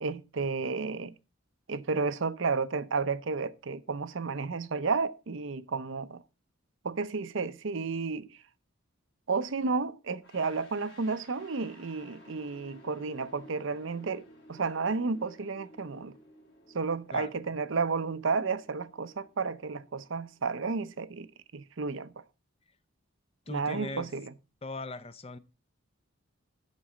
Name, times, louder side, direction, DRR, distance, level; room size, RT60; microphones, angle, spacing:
voice 1, 0.0-1.1 1.7-6.2 6.8-8.3 9.3-16.2 16.7-21.3 21.5-22.1 23.5-24.3, right 4 dB, 60° right, 0.6 m, -32 dB
sound 1, 10.2-21.1, equal, 55° left, 3.3 m, -56 dB
voice 2, 23.5-24.1 24.6-25.4, left 2 dB, 25° left, 0.6 m, -39 dB
11.5 x 4.1 x 7.4 m
head